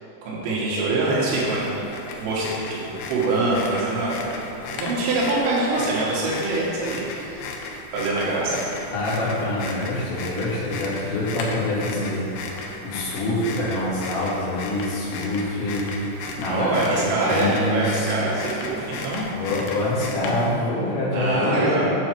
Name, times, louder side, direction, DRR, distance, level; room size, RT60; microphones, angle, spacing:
voice 1, 0.2-1.7 2.2-4.2 4.8-7.4 7.9-8.6 16.4-19.2 21.1-21.9, right 2 dB, 80° right, -6 dB, 4.0 m, -24 dB
sound 1, 1.2-20.7, left 3 dB, 80° left, 2.4 m, -35 dB
voice 2, 8.9-18.1 19.3-21.8, left 1 dB, 65° left, -8 dB, 4.3 m, -26 dB
9.3 x 7.1 x 4.5 m, 2.8 s
omnidirectional pair, 5.9 m